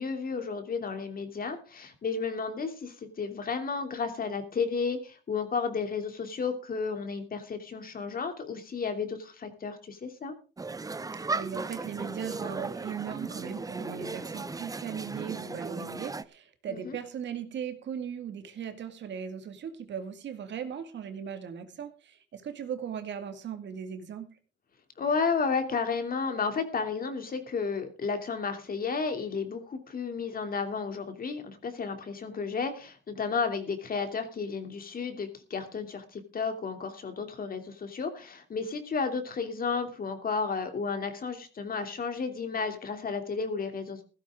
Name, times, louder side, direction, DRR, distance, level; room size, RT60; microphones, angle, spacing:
voice 1, 0.0-10.3 16.7-17.0 25.0-44.0, left 5 dB, 45° left, 7 dB, 2.9 m, -32 dB
sound 1, 10.6-16.2, right 3 dB, 15° right, 0.7 m, -36 dB
voice 2, 11.3-24.3, right 8 dB, 65° right, 8 dB, 2.1 m, -38 dB
15.5 x 13.0 x 3.7 m, 0.34 s
cardioid pair, 90°, 20 cm